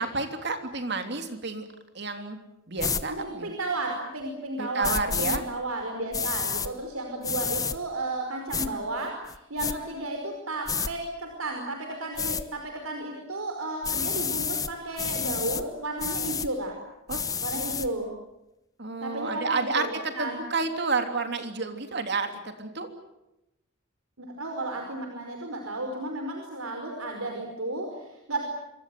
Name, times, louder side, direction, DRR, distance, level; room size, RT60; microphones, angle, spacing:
voice 1, 0.0-1.6 1.9-2.4 2.7-3.5 4.6-5.4 17.1-17.2 18.8-22.9, right 3 dB, 55° right, 6 dB, 3.2 m, -30 dB
sound 1, 2.8-3.0 4.8-5.4 6.1-6.7 7.2-7.8 8.5-8.7 9.3-9.7 10.7-10.9 12.2-12.4 13.8-14.7 15.0-15.6 16.0-16.5 17.1-17.9, left 6 dB, 15° left, 1.1 m, -29 dB
voice 2, 3.1-16.8 17.4-18.1 19.0-20.4 24.2-28.4, right 2 dB, 90° right, 3 dB, 5.1 m, -33 dB
27.0 x 24.5 x 7.8 m, 0.90 s
head